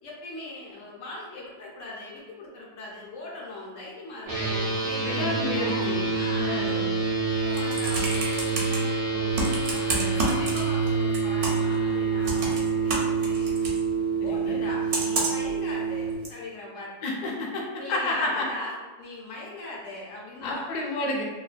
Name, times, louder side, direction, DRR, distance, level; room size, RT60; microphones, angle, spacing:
voice 1, 0.0-9.3 9.7-13.5 14.2-16.9 17.8-20.7, left 1 dB, 80° left, -4 dB, 1.0 m, -40 dB
sound 1, 4.3-16.1, right 5 dB, 50° right, 0.4 m, -27 dB
voice 2, 5.0-6.1 6.4-6.9 9.9-10.3 14.2-14.6 17.0-18.4 20.4-21.2, left 2 dB, 60° left, -1 dB, 0.4 m, -31 dB
Computer keyboard, 7.3-8.8 9.3-10.9 11.1-11.7 12.2-13.8 14.9-15.5 16.2-16.3, right 2 dB, 70° right, 0.8 m, -29 dB
2.6 x 2.1 x 2.4 m, 1.3 s
omnidirectional pair, 1.3 m